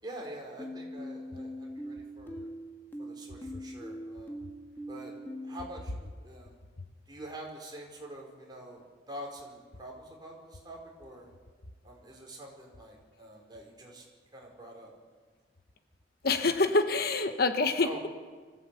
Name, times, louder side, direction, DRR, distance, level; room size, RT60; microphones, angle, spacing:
voice 1, 0.0-2.5 3.0-4.4 4.9-5.1 5.4-6.6 7.1-11.3 11.8-14.1 14.3-14.9 16.4-16.5 17.8-18.0, right 1 dB, 25° right, -1 dB, 5.2 m, -46 dB
sound 1, 0.6-5.7, equal, 10° left, 1.6 m, -42 dB
voice 2, 16.2-18.1, left 3 dB, 60° left, 8 dB, 1.2 m, -26 dB
24.5 x 15.5 x 8.5 m, 1.5 s
head